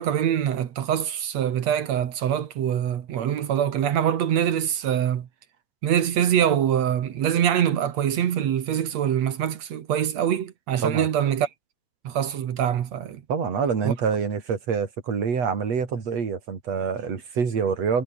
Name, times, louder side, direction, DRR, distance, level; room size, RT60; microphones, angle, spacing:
voice 1, 0.0-5.3 5.8-11.5 12.0-13.2 13.8-13.9, right 10 dB, 55° right, 2.0 m, -24 dB
voice 2, 13.3-18.0, right 6 dB, 40° right, 4.3 m, -26 dB
omnidirectional pair, 4.8 m